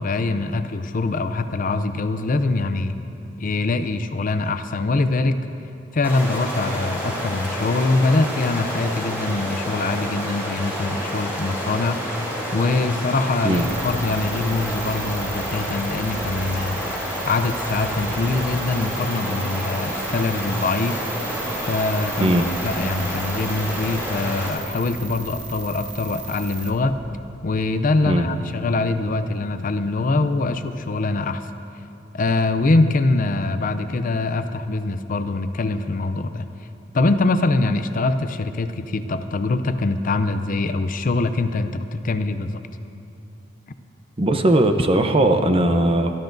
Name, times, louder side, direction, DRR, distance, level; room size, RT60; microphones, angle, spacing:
voice 1, 0.0-2.9 3.4-5.5 5.9-12.0 12.5-16.8 17.3-21.0 21.7-27.0 27.4-31.5 32.1-36.5 36.9-42.6, left 3 dB, 45° left, 10 dB, 0.5 m, -23 dB
Stream, 6.0-24.5, equal, 10° right, 3.8 m, -29 dB
sound 1, 13.5-26.7, right 4 dB, 80° right, 1.5 m, -36 dB
voice 2, 44.2-46.1, right 1 dB, 30° right, 6 dB, 0.7 m, -18 dB
26.0 x 12.5 x 2.6 m, 2.7 s
head